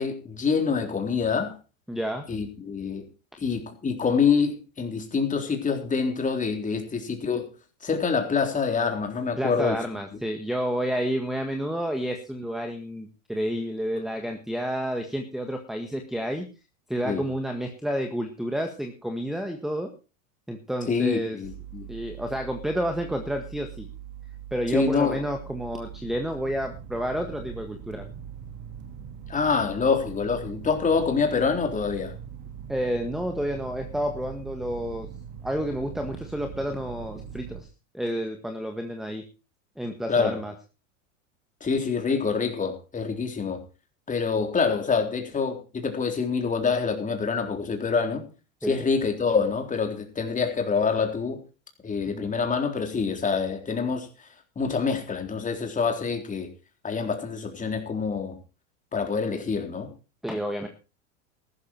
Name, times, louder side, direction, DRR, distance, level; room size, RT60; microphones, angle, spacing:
voice 1, 0.0-1.6 2.3-3.1 3.4-7.5 7.8-9.8 17.0-17.3 20.9-21.9 24.7-25.2 29.3-32.1 40.1-40.4 41.6-43.6 44.1-48.2 48.6-51.4 51.8-54.3 54.6-56.5 56.8-58.4 58.9-59.9, left 5 dB, 20° left, 3.8 m, -26 dB
voice 2, 1.9-2.2 9.4-16.5 16.9-19.9 20.5-21.4 21.9-23.9 24.5-28.1 32.7-35.1 35.4-37.7 37.9-39.2 39.8-40.5 48.6-48.8 52.1-52.3 60.2-60.7, equal, ahead, 1.7 m, -30 dB
sound 1, 21.4-37.6, right 9 dB, 60° right, 3.2 m, -41 dB
14.5 x 12.5 x 4.6 m
supercardioid pair, 115°, 41 cm